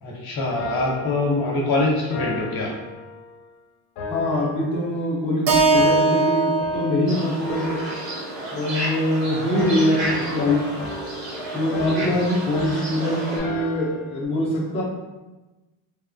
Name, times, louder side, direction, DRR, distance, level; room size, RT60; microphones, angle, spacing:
voice 1, 0.0-2.7, left 2 dB, 50° left, -2 dB, 0.8 m, -24 dB
sound 1, 0.6-3.5 4.0-5.3 5.7-7.1 7.4-9.2 9.5-14.3, left 2 dB, 85° left, 0.6 m, -36 dB
voice 2, 4.1-7.9 8.5-10.7 11.5-14.8, left 1 dB, 15° left, -7 dB, 0.5 m, -23 dB
Keyboard (musical), 5.5-9.7, right 3 dB, 45° right, 0.5 m, -23 dB
sound 2, 7.1-13.4, right 1 dB, 75° right, 1.1 m, -31 dB
3.0 x 2.1 x 2.5 m, 1.1 s
cardioid pair, 125°, 47 cm